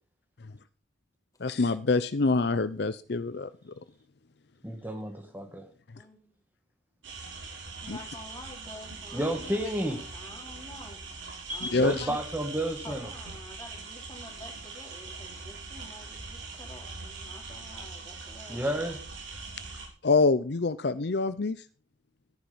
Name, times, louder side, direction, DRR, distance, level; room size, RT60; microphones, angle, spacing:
voice 1, 1.4-3.7 7.9-8.0 11.7-12.1 20.0-21.6, left 3 dB, 60° left, 0.6 m, -26 dB
voice 2, 4.6-5.7 9.1-10.0 11.5-13.1 18.5-19.0, equal, 10° right, 1.5 m, -31 dB
voice 3, 6.0-6.4 7.8-11.2 11.5-12.2 12.8-19.0, left 1 dB, 20° left, 3.6 m, -49 dB
sound 1, 7.0-19.9, right 4 dB, 80° right, 6.6 m, -42 dB
13.5 x 10.5 x 5.6 m
head